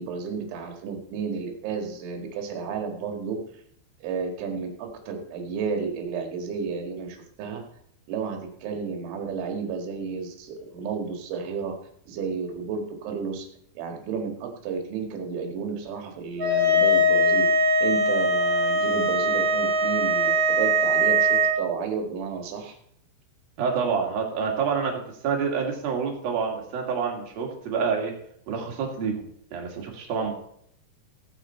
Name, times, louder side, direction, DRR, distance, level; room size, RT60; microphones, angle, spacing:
voice 1, 0.0-3.4 4.0-7.6 8.1-11.8 12.1-13.5 13.8-17.5 17.8-22.8, right 5 dB, 70° right, 4 dB, 4.0 m, -32 dB
sound 1, 16.4-21.5, equal, 35° right, 2.1 m, -21 dB
voice 2, 23.6-28.1 28.5-29.2 29.5-30.3, right 6 dB, 55° right, 0 dB, 3.6 m, -27 dB
16.0 x 9.2 x 4.4 m, 0.66 s
omnidirectional pair, 5.8 m